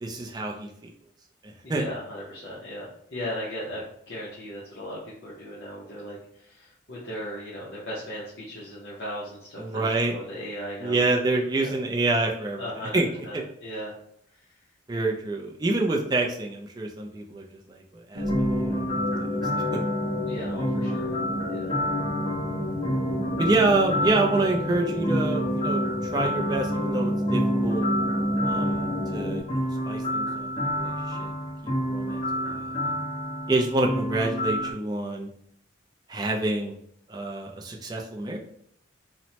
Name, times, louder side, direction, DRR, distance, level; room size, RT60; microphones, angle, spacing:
voice 1, 0.0-0.9 1.4-1.9 9.6-10.1 10.8-12.6 12.9-13.4 14.9-17.8 18.1-18.6 23.4-25.8 26.1-27.8 28.4-31.3 31.6-33.0 33.5-35.3 36.1-36.7 37.1-38.4, right 2 dB, 20° right, 1 dB, 0.3 m, -27 dB
voice 2, 1.6-2.9 3.1-11.8 12.6-13.9 20.3-21.1 21.5-21.7, equal, 55° left, -8 dB, 0.6 m, -37 dB
sound 1, 18.1-29.4, left 1 dB, 85° right, 0.8 m, -29 dB
sound 2, 18.2-34.7, equal, 25° left, 0.9 m, -30 dB
3.0 x 2.0 x 2.7 m, 0.69 s
head